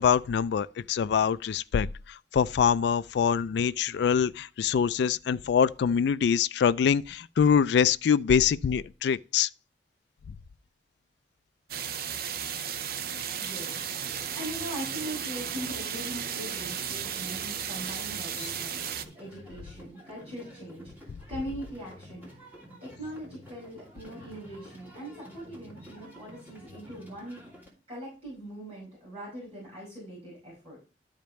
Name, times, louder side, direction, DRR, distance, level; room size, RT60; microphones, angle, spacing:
voice 1, 0.0-9.5, left 7 dB, 65° left, 0.3 m, -24 dB
sound 1, 11.7-19.0, right 8 dB, 55° right, 0.6 m, -34 dB
voice 2, 13.3-18.8 19.2-22.5 22.8-27.4 27.9-30.8, right 1 dB, 35° right, 5.3 m, -41 dB
sound 2, 13.7-27.7, equal, 10° right, 2.8 m, -50 dB
12.5 x 5.1 x 3.1 m
head